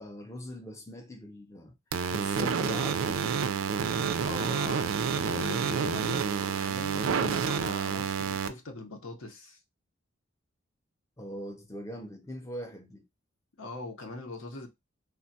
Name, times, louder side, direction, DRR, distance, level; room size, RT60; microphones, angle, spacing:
voice 1, 0.0-1.7 2.1-3.3 11.2-13.1, equal, 15° left, 0.4 m, -41 dB
sound 1, 1.9-8.5, right 6 dB, 85° right, 0.4 m, -29 dB
voice 2, 4.2-6.3 6.5-9.6 13.6-14.7, left 2 dB, 85° left, 0.8 m, -40 dB
3.3 x 2.2 x 2.6 m
head